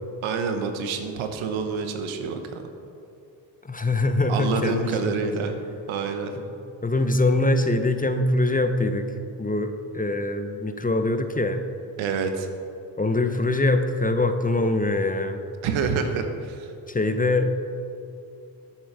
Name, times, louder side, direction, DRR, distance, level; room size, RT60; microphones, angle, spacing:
voice 1, 0.2-2.6 4.3-5.6 5.9-6.3 12.0-12.5 15.6-16.7, right 5 dB, 75° right, 6 dB, 1.2 m, -27 dB
voice 2, 3.6-5.1 6.4-6.5 6.8-9.1 9.4-11.6 13.0-15.4 16.9-17.5, left 2 dB, 15° left, 7 dB, 1.0 m, -23 dB
13.0 x 7.4 x 5.0 m, 2.6 s
supercardioid pair, 50°, 47 cm